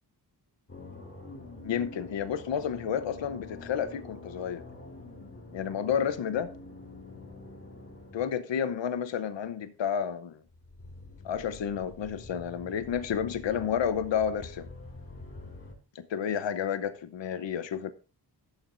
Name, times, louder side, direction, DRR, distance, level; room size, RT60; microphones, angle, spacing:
sound 1, 0.7-8.5 10.5-15.7, left 2 dB, 35° left, 4.6 m, -46 dB
voice 1, 1.6-4.6 5.5-6.5 8.1-10.4 11.2-14.7 15.9-17.9, left 8 dB, 85° left, 0.9 m, -31 dB
16.5 x 7.3 x 2.5 m
wide cardioid pair, 130°, 43 cm